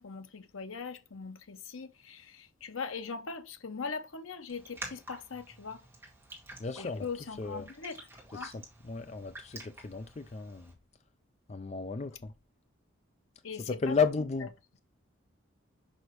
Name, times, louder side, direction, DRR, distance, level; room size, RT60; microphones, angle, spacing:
voice 1, 0.0-5.8 6.8-8.1 8.3-8.5 13.4-13.9, left 5 dB, 85° left, 0.9 m, -41 dB
Raindrop, 4.5-10.7, right 1 dB, 10° right, 1.9 m, -49 dB
voice 2, 6.6-7.1 7.4-7.7 8.3-10.7 11.5-12.3 13.6-14.5, left 5 dB, 35° left, 0.4 m, -33 dB
6.2 x 5.5 x 3.1 m
head